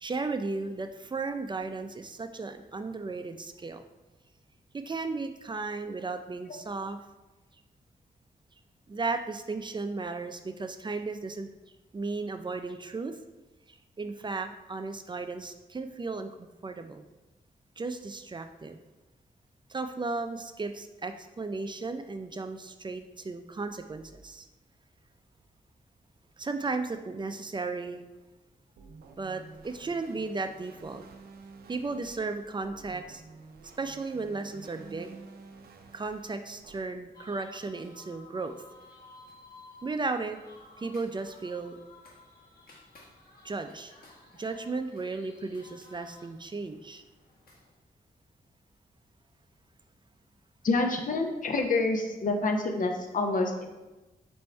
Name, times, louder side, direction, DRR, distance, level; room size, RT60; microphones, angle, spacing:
voice 1, 0.0-3.8 4.7-7.0 8.9-11.5 11.9-13.2 14.0-16.3 16.6-17.0 17.8-18.8 19.7-24.5 26.4-28.0 29.2-31.0 31.7-33.2 33.8-35.2 35.9-38.6 39.8-40.4 40.8-41.8 43.4-43.9 44.4-47.0, right 3 dB, 30° right, 7 dB, 0.4 m, -35 dB
sound 1, 28.8-36.8, right 4 dB, 85° right, 0.5 m, -51 dB
sound 2, 37.1-47.7, left 2 dB, 75° left, 1.0 m, -55 dB
voice 2, 50.6-53.7, left 3 dB, 60° left, 4 dB, 0.7 m, -27 dB
4.5 x 2.6 x 4.3 m, 1.1 s
cardioid pair, 60°, 16 cm